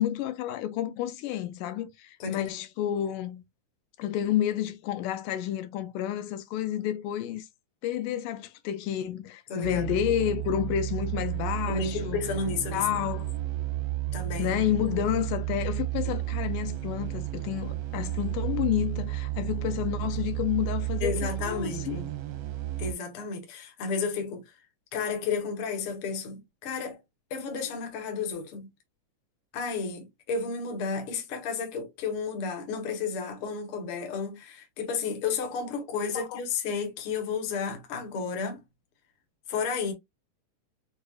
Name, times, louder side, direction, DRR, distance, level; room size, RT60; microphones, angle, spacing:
voice 1, 0.0-3.4 4.0-7.5 7.8-12.2 12.7-13.3 14.4-22.0 36.1-36.4, left 11 dB, 85° left, 2.2 m, -30 dB
voice 2, 2.2-2.5 9.5-9.9 11.7-12.9 14.1-14.6 16.0-16.1 21.0-22.1 22.8-24.4 24.9-27.0 27.3-28.7 29.5-38.6 39.5-39.9, left 5 dB, 55° left, 1.6 m, -32 dB
sound 1, 9.6-22.9, right 16 dB, 75° right, 1.4 m, -32 dB
6.4 x 2.6 x 2.3 m
omnidirectional pair, 3.6 m